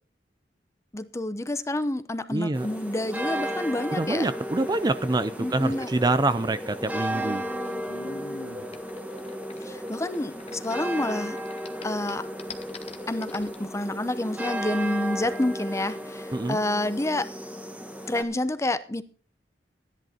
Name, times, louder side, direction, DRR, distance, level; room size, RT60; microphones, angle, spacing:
voice 1, 0.9-4.3 5.4-5.9 7.1-7.9 9.6-11.4 11.8-12.2 13.1-17.3 18.1-19.0, left 1 dB, 15° left, 12 dB, 0.8 m, -29 dB
voice 2, 2.3-2.7 3.9-7.4 16.3-16.6, right 2 dB, 25° right, 12 dB, 0.5 m, -26 dB
sound 1, 2.5-18.2, equal, 10° right, 1.4 m, -34 dB
sound 2, 6.8-11.1 11.4-13.6, left 3 dB, 35° left, 1.1 m, -43 dB
13.5 x 11.0 x 4.3 m, 0.40 s
head